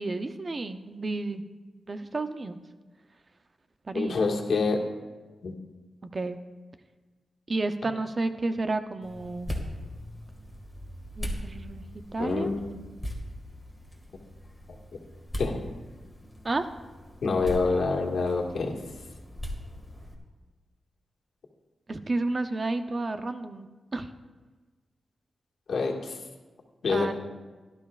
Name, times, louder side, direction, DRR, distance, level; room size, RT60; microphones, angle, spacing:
voice 1, 0.0-1.4 1.9-2.6 3.9-4.2 6.0-6.4 7.5-9.5 11.2-11.9 12.1-12.6 16.4-16.7 21.9-24.1 26.9-27.1, right 2 dB, 30° right, 9 dB, 0.6 m, -31 dB
voice 2, 3.9-4.8 5.4-5.6 12.2-12.7 15.4-15.6 17.2-18.8 25.7-26.2 26.8-27.1, left 4 dB, 65° left, -1 dB, 1.7 m, -26 dB
sound 1, 9.0-20.1, equal, ahead, 1.8 m, -40 dB
17.0 x 12.0 x 2.4 m, 1.3 s
wide cardioid pair, 150°, 0 cm